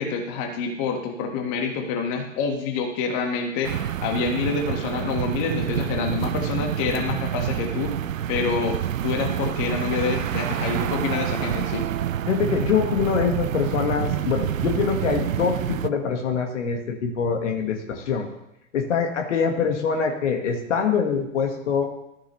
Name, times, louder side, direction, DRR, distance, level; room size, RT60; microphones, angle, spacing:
voice 1, 0.0-7.9 8.3-11.9, left 5 dB, 40° left, 3 dB, 1.6 m, -27 dB
sound 1, 3.6-15.9, right 10 dB, 80° right, 0.5 m, -27 dB
voice 2, 12.3-18.3 18.7-21.9, left 6 dB, 60° left, 3 dB, 1.6 m, -24 dB
13.0 x 7.3 x 3.1 m, 0.86 s
figure-of-eight pair, 105°, 39 cm